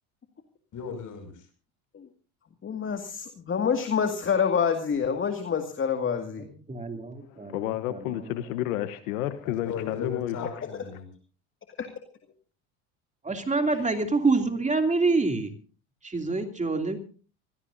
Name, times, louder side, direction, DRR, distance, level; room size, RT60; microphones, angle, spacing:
voice 1, 0.7-1.4 9.6-11.1, left 6 dB, 45° left, 7 dB, 6.0 m, -36 dB
voice 2, 2.6-6.4 11.8-11.9, left 7 dB, 30° left, 6 dB, 2.0 m, -27 dB
voice 3, 6.4-8.1 13.2-15.5 16.0-17.0, right 3 dB, 15° right, 5 dB, 2.7 m, -27 dB
voice 4, 7.3-10.7, left 13 dB, 85° left, 12 dB, 1.1 m, -31 dB
25.0 x 17.0 x 2.6 m, 0.38 s
supercardioid pair, 90°, 41 cm